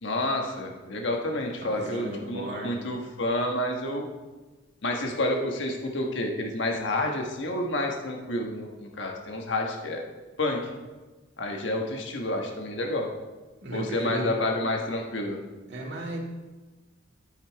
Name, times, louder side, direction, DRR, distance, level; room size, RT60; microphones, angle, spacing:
voice 1, 0.0-4.1 4.8-10.0 10.4-10.6 11.4-13.1 13.7-15.4, left 1 dB, 70° left, 1 dB, 1.4 m, -29 dB
voice 2, 1.6-2.8 13.6-14.4 15.7-16.2, right 1 dB, 60° right, -2 dB, 2.3 m, -35 dB
13.0 x 5.8 x 4.6 m, 1.2 s
head